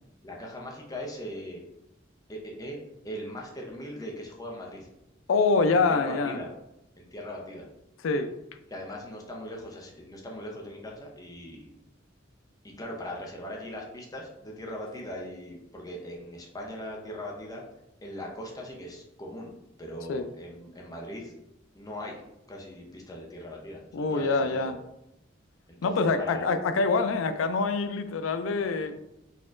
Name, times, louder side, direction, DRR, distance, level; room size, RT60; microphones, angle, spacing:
voice 1, 0.2-1.6 2.3-2.8 3.0-4.9 5.7-6.5 7.0-7.7 8.7-11.7 12.6-17.6 18.0-19.5 19.8-21.3 21.7-22.2 22.5-24.6 25.7-26.6, equal, 20° left, -1 dB, 0.7 m, -40 dB
voice 2, 5.3-6.4 8.0-8.3 20.1-20.3 23.9-24.8 25.8-29.0, left 4 dB, 85° left, 9 dB, 0.4 m, -25 dB
4.1 x 2.8 x 2.5 m, 0.87 s
head